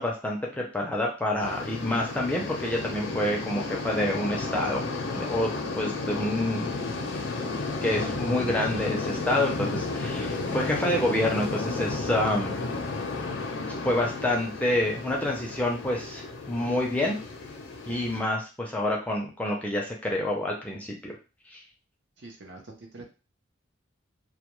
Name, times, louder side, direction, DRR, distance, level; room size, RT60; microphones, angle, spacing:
voice 1, 0.0-4.9 5.1-6.8 7.8-12.6 13.8-17.2 17.9-21.1 21.5-21.6, left 1 dB, 5° left, -2 dB, 0.4 m, -28 dB
sound 1, 1.4-18.2, left 3 dB, 70° left, 0.5 m, -33 dB
voice 2, 22.2-23.0, right 2 dB, 60° right, 2 dB, 0.6 m, -45 dB
2.2 x 2.2 x 3.0 m, 0.32 s
head